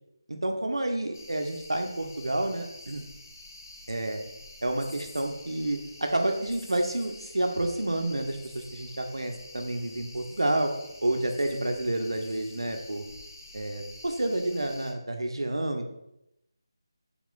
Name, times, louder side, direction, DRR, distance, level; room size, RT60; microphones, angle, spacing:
voice 1, 0.3-3.0 3.9-4.2 4.6-10.7 11.0-13.0 13.5-15.9, right 1 dB, 85° right, 4 dB, 0.7 m, -29 dB
sound 1, 1.1-14.9, left 2 dB, 45° left, 0.7 m, -48 dB
3.8 x 3.0 x 3.8 m, 0.84 s
figure-of-eight pair, 165°, 2 cm